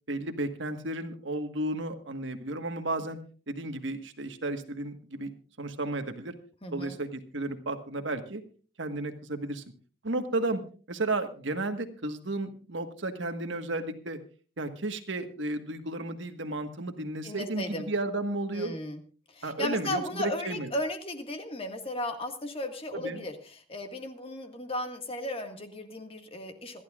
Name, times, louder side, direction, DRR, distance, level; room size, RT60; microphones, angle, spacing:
voice 1, 0.1-3.2 3.5-5.3 5.6-6.3 6.7-8.4 8.8-9.6 10.0-10.6 10.9-14.2 14.6-18.7 19.4-20.7 22.9-23.2, right 2 dB, 75° right, 7 dB, 1.5 m, -33 dB
voice 2, 6.6-7.0 17.2-17.9 18.5-19.0 19.3-26.8, left 1 dB, 30° left, 5 dB, 1.8 m, -35 dB
26.5 x 12.0 x 2.4 m, 0.38 s
head